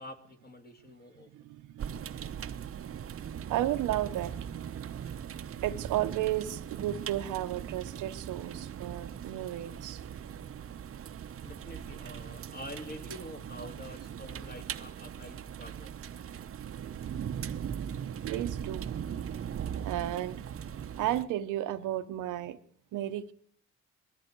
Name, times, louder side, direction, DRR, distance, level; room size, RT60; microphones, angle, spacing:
voice 1, 0.0-1.3 11.4-16.1, left 1 dB, 30° left, 5 dB, 2.3 m, -46 dB
voice 2, 1.3-2.9 3.5-4.3 4.9-5.1 5.6-10.0 18.2-18.8 19.8-20.4 21.0-22.6 22.9-23.3, right 13 dB, 85° right, 10 dB, 0.9 m, -33 dB
sound 1, 1.8-21.2, right 8 dB, 50° right, 0.8 m, -39 dB
20.5 x 13.5 x 4.6 m, 0.63 s
cardioid pair, 90°, 30 cm